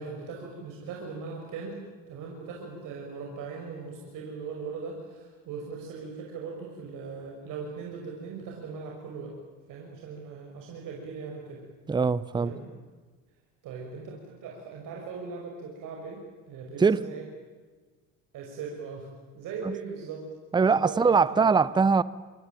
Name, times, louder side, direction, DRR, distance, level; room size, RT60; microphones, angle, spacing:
voice 1, 0.0-9.3 9.7-11.6 12.4-12.7 13.6-17.2 18.3-19.1 19.3-20.2 20.5-21.5, right 5 dB, 60° right, 6.2 m, -39 dB
voice 2, 11.9-12.5 16.8-17.0 19.6-19.7 20.5-22.0, right 5 dB, 10° right, 0.8 m, -22 dB
26.5 x 22.0 x 9.2 m
supercardioid pair, 115°, 36 cm